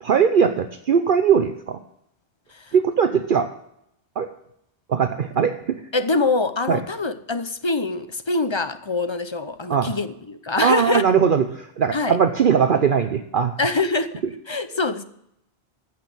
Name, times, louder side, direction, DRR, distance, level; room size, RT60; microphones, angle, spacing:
voice 1, 0.0-1.8 2.7-3.5 4.2-4.3 4.9-5.8 6.7-6.8 9.7-9.9 10.6-13.5, right 7 dB, 55° right, 9 dB, 0.8 m, -20 dB
voice 2, 5.9-11.2 11.9-12.2 13.6-14.1 14.5-15.0, left 3 dB, 30° left, 11 dB, 0.7 m, -24 dB
15.0 x 6.1 x 8.5 m, 0.76 s
omnidirectional pair, 1.1 m